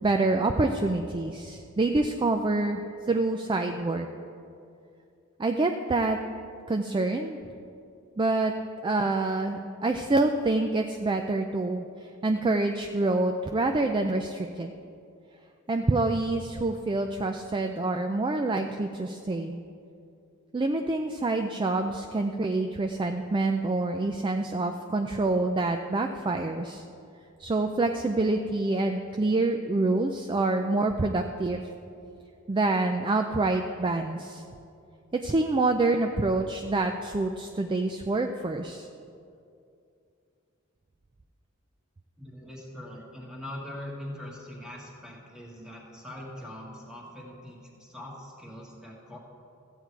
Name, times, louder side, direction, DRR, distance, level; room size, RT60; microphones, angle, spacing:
voice 1, 0.0-4.1 5.4-6.2 6.7-7.4 8.2-8.5 8.8-14.7 15.7-19.6 20.5-26.8 27.4-31.6 32.5-34.4 35.1-38.9, right 2 dB, 25° right, 5 dB, 0.4 m, -27 dB
voice 2, 42.2-49.2, left 1 dB, 5° right, -2 dB, 1.7 m, -42 dB
14.0 x 8.2 x 4.6 m, 2.5 s
head